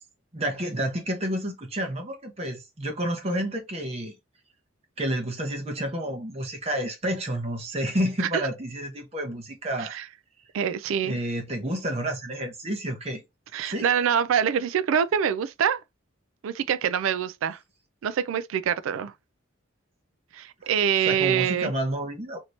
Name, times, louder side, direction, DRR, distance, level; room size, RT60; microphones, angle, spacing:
voice 1, 0.3-4.2 5.0-10.0 11.0-13.2 13.7-13.9 20.6-20.7 21.0-22.4, right 1 dB, 30° right, 0.8 m, -30 dB
voice 2, 10.5-11.2 13.5-15.8 16.4-17.6 18.0-19.1 20.3-21.7, right 8 dB, 80° right, 0.3 m, -25 dB
2.9 x 2.7 x 3.1 m
head